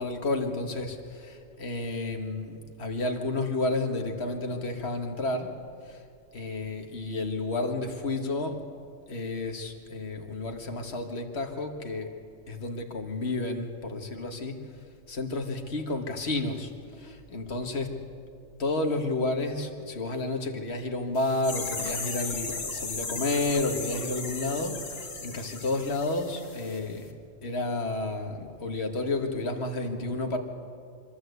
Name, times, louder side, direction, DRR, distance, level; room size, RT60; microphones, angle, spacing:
voice 1, 0.0-5.6 5.9-6.0 6.3-8.6 9.1-12.1 12.5-14.6 15.1-17.9 18.6-27.1 27.4-30.4, left 2 dB, 55° left, 4 dB, 1.9 m, -31 dB
sound 1, 21.1-26.8 27.0-27.1, left 4 dB, 75° left, 2.1 m, -36 dB
25.5 x 13.5 x 8.1 m, 2.3 s
omnidirectional pair, 1.3 m